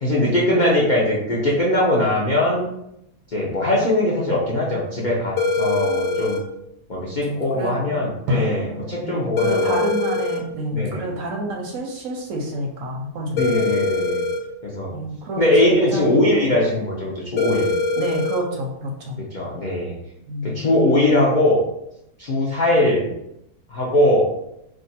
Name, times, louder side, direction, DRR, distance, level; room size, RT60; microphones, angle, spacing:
voice 1, 0.0-2.7 3.3-6.4 6.9-9.8 10.7-11.1 13.3-14.2 14.6-15.0 15.4-17.7 19.2-19.9 20.4-21.6 22.2-23.1 23.7-24.3, left 1 dB, 65° left, -5 dB, 0.4 m, -20 dB
sound 1, 5.4-6.4 9.4-10.4 13.4-14.4 17.4-18.4, left 3 dB, 85° left, 1.1 m, -22 dB
voice 2, 7.3-8.0 9.0-13.7 14.9-15.5 15.9-16.2 16.4-16.5 18.0-19.2 20.3-20.7, right 1 dB, 70° right, 1 dB, 0.9 m, -29 dB
Drum, 8.3-11.2, left 2 dB, 90° right, 1.2 m, -31 dB
2.6 x 2.4 x 4.0 m, 0.81 s
omnidirectional pair, 1.7 m